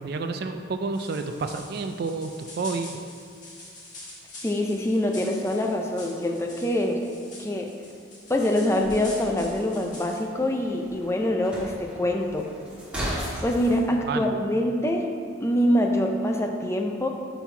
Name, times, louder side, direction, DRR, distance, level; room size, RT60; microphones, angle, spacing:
voice 1, 0.0-2.9 13.9-14.3, right 4 dB, 50° right, 7 dB, 0.3 m, -30 dB
sound 1, 0.9-10.2, left 1 dB, 40° left, 1.3 m, -45 dB
voice 2, 4.4-7.0 7.4-7.7 8.3-12.5 13.4-15.1 15.4-17.1, left 1 dB, 15° left, 2 dB, 0.5 m, -25 dB
sound 2, 8.8-13.8, equal, 5° right, 1.5 m, -37 dB
5.4 x 4.6 x 5.5 m, 2.3 s
head